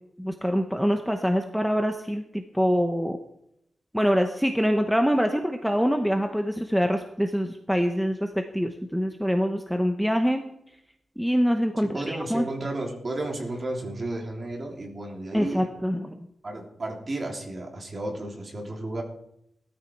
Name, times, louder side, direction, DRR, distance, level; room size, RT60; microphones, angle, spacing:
voice 1, 0.2-3.2 3.9-10.4 11.2-12.4 15.3-16.2, equal, ahead, 5 dB, 0.9 m, -25 dB
voice 2, 11.8-15.7 16.4-19.0, right 2 dB, 30° right, 1 dB, 3.4 m, -33 dB
19.5 x 13.5 x 4.7 m, 0.77 s
wide cardioid pair, 150°, 0 cm